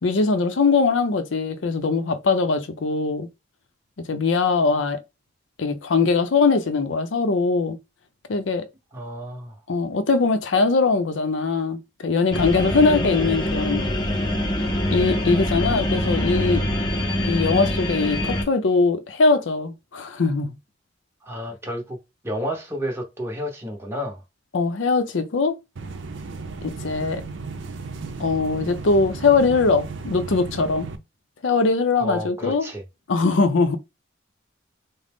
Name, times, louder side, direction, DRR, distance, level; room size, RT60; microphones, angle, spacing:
voice 1, 0.0-3.3 4.1-5.0 5.6-7.8 8.3-8.7 9.7-13.9 14.9-16.6 17.2-20.6 24.5-25.6 26.6-27.2 28.2-30.9 31.4-32.7 33.1-33.8, left 4 dB, 75° left, 0.5 m, -21 dB
voice 2, 8.9-9.6 21.2-22.0 22.2-24.2 32.0-32.8, equal, 15° right, 0.7 m, -31 dB
sound 1, 12.3-18.4, left 1 dB, 25° left, 0.7 m, -24 dB
sound 2, 25.8-31.0, right 4 dB, 80° right, 0.5 m, -35 dB
3.7 x 2.0 x 3.5 m
head